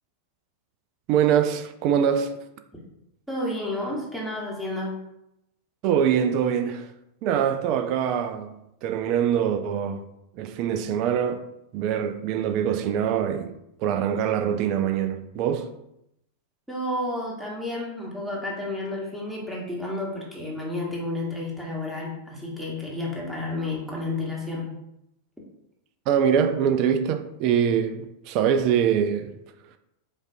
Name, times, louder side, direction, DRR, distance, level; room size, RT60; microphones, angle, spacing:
voice 1, 1.1-2.4 5.8-6.9 7.2-8.5 8.8-10.1 10.4-11.5 11.7-13.5 13.8-15.7 26.1-29.4, right 8 dB, 40° right, 0.3 m, -24 dB
voice 2, 3.3-5.0 16.7-24.7, left 2 dB, 5° right, 1.0 m, -31 dB
5.0 x 2.4 x 2.6 m
figure-of-eight pair, 90°, 0 cm